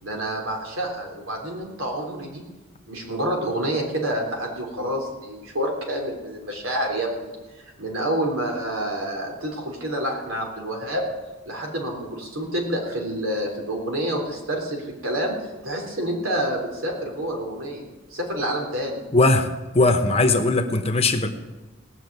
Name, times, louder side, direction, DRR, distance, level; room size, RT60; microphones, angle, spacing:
voice 1, 0.0-2.4 2.9-7.3 7.8-11.0 11.4-17.8 18.1-19.0, right 1 dB, 90° right, 1 dB, 3.4 m, -28 dB
voice 2, 19.1-21.3, left 2 dB, 30° left, 6 dB, 1.0 m, -19 dB
18.5 x 6.5 x 8.1 m, 1.2 s
head